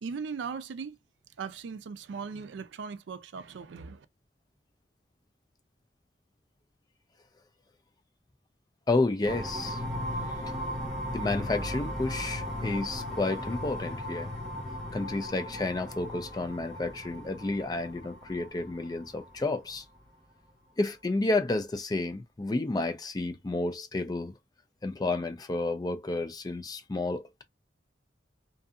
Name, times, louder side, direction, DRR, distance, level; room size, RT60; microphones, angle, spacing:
voice 1, 0.0-1.0 1.4-4.1, right 5 dB, 75° right, 0.4 m, -38 dB
voice 2, 8.9-9.8 11.1-14.3 14.9-19.8 20.8-24.3 24.8-27.4, left 2 dB, 20° left, 0.4 m, -31 dB
sound 1, 9.2-19.8, left 1 dB, 5° left, 0.9 m, -37 dB
2.6 x 2.5 x 2.3 m
head